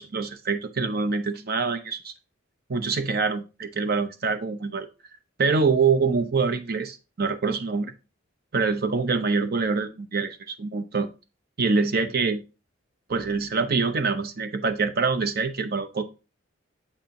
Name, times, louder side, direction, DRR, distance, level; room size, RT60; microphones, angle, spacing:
voice 1, 0.0-2.1 2.7-4.9 5.4-7.9 8.5-11.1 11.6-12.4 13.1-16.0, right 4 dB, 50° right, 9 dB, 0.7 m, -25 dB
7.3 x 4.3 x 3.7 m, 0.30 s
head